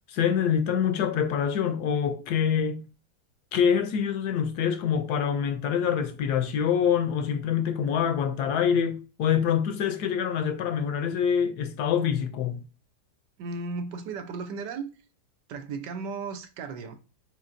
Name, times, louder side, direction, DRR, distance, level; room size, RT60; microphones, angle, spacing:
voice 1, 0.1-2.8 3.5-12.6, left 8 dB, 75° left, 1.1 m, -25 dB
voice 2, 13.4-14.9 15.5-17.0, right 4 dB, 85° right, 1.3 m, -35 dB
4.4 x 4.0 x 2.5 m
omnidirectional pair, 1.9 m